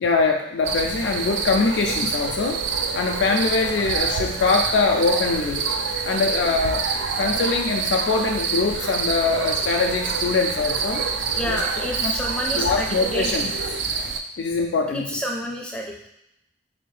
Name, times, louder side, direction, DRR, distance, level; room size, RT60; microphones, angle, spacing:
voice 1, 0.0-2.6 2.9-5.6 6.0-6.8 7.2-11.1 11.4-11.6 12.0-12.1 12.5-13.5 14.4-15.2, left 4 dB, 75° left, 1 dB, 0.3 m, -23 dB
sound 1, 0.6-14.2, right 5 dB, 80° right, 0.4 m, -26 dB
voice 2, 11.3-13.3 14.9-16.1, equal, 5° left, -1 dB, 0.4 m, -29 dB
4.1 x 2.7 x 3.2 m, 0.84 s
head